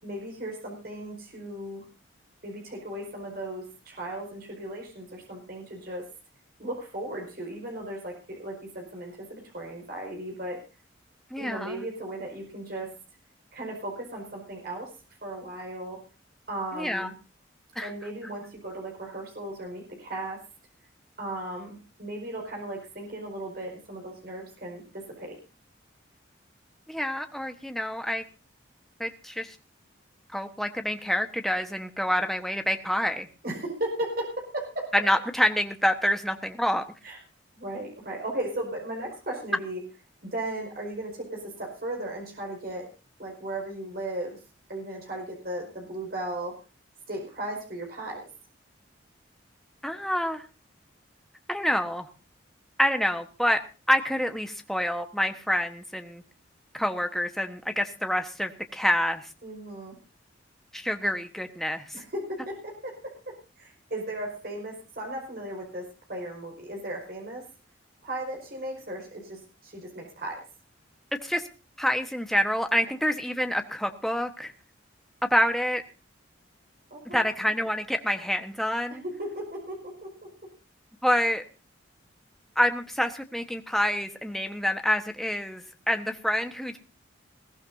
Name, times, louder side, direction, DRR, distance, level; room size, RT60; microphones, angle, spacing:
voice 1, 0.0-1.8 2.4-6.1 6.6-10.6 11.4-12.9 13.5-14.9 15.2-16.0 16.5-17.1 17.8-20.4 21.2-25.4 33.4-34.9 37.0-37.2 37.5-39.8 40.2-42.9 43.2-44.4 44.7-46.6 47.1-48.3 59.4-60.0 61.9-67.4 68.0-70.4 76.9-77.3 78.9-80.3, right 1 dB, 50° right, 0 dB, 5.1 m, -36 dB
voice 2, 11.3-11.8 16.7-17.1 17.7-17.9 26.9-28.2 29.0-29.5 30.3-33.3 34.9-36.8 49.8-50.4 51.5-52.1 52.8-53.6 53.9-56.2 56.7-59.2 60.7-61.8 71.2-71.4 71.8-74.5 75.3-75.8 77.1-79.0 81.0-81.4 82.6-86.8, equal, ahead, 5 dB, 1.2 m, -27 dB
21.0 x 16.0 x 2.7 m, 0.33 s
head